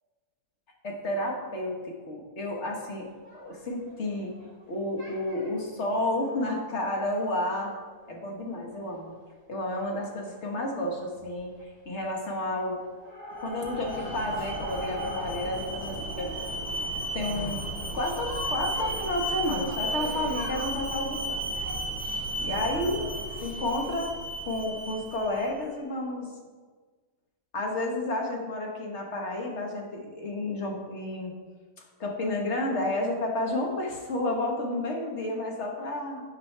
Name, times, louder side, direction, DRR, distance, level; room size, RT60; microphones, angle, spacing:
voice 1, 0.8-4.3 4.7-7.7 8.1-9.1 9.5-12.8 13.4-16.3 17.1-17.6 17.9-21.4 22.4-23.0 23.4-24.1 24.4-26.3 27.5-31.3 32.0-36.2, left 1 dB, 45° left, 0 dB, 1.5 m, -31 dB
sound 1, 3.1-4.6 5.0-5.5 6.0-8.1 8.5-8.6 8.8-8.9 9.2-9.3 10.7-10.9 11.1-11.6 11.9-12.4 12.8-21.7, equal, 30° left, 2.5 m, -42 dB
Alarm, 13.4-25.5, right 1 dB, 25° right, 1.8 m, -34 dB
9.4 x 4.9 x 4.5 m, 1.4 s
omnidirectional pair, 1.7 m